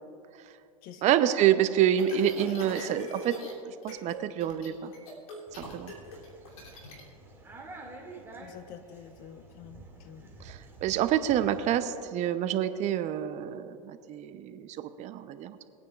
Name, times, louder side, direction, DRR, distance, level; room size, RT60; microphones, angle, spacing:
voice 1, 1.0-3.4 3.7-4.9 5.5-5.9 10.4-15.7, right 10 dB, 40° right, 11 dB, 0.6 m, -27 dB
sound 1, 1.9-3.5 3.8-4.2 4.4-7.0, left 2 dB, 75° left, 2.9 m, -42 dB
sound 2, 5.5-11.8, right 2 dB, 15° right, 2.1 m, -49 dB
voice 2, 8.4-10.3, left 9 dB, 50° left, 9 dB, 1.0 m, -48 dB
21.5 x 9.3 x 2.4 m, 2.6 s
hypercardioid pair, 100°, 18 cm